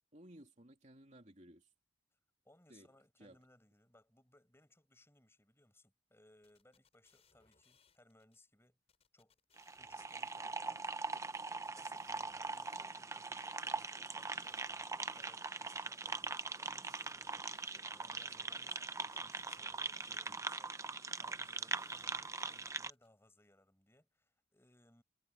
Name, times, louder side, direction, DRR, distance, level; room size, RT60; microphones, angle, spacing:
voice 1, 0.1-1.7 2.7-2.9 3.2-3.4 20.1-20.4, right 1 dB, 35° right, 2.9 m, -58 dB
voice 2, 2.4-8.8 9.1-9.4 9.8-10.9 11.8-25.0, left 1 dB, 10° left, 5.6 m, -67 dB
sound 1, 6.4-8.4 8.9-10.8 11.3-13.3 13.8-15.7 16.2-18.2 18.7-20.6 21.1-23.1, left 6 dB, 30° left, 5.7 m, -72 dB
sound 2, 9.6-22.9, right 3 dB, 15° right, 0.6 m, -42 dB
head